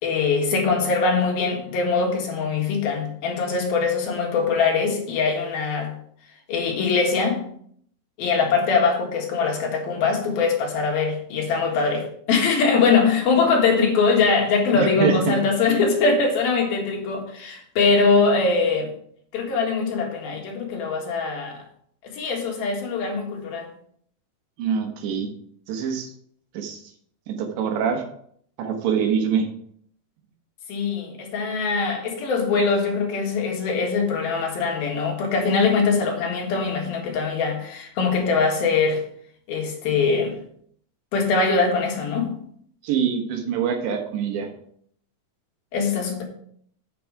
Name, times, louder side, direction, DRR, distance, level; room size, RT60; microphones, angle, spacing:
voice 1, 0.0-5.9 6.5-7.4 8.2-18.9 19.3-21.6 22.0-23.7 30.7-39.0 39.5-40.4 41.1-42.3 45.7-46.2, left 4 dB, 65° left, 3.3 m, -22 dB
voice 2, 14.7-15.4 24.6-25.3 25.7-26.1 26.6-26.8 27.3-28.0 28.6-29.5 42.8-44.5, right 7 dB, 85° right, 3.6 m, -24 dB
7.9 x 7.7 x 4.7 m
omnidirectional pair, 4.9 m